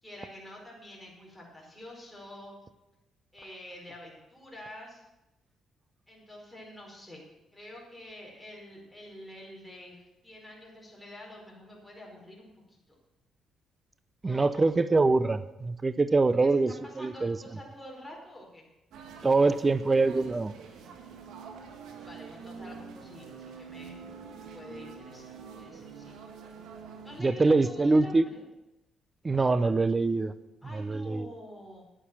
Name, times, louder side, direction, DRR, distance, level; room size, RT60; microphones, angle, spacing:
voice 1, 0.0-2.5 3.3-5.0 6.1-7.2 7.5-12.8 14.2-14.7 16.3-18.6 22.0-23.9 24.4-26.1 27.0-28.4 30.6-31.8, left 1 dB, 5° left, -3 dB, 4.6 m, -47 dB
voice 2, 14.2-17.4 19.2-20.5 27.2-28.2 29.2-30.3 30.7-31.3, right 3 dB, 25° right, 14 dB, 0.6 m, -24 dB
sound 1, 18.9-27.2, right 5 dB, 85° right, 1.6 m, -46 dB
9.6 x 8.9 x 7.4 m, 0.96 s
cardioid pair, 90°, 0 cm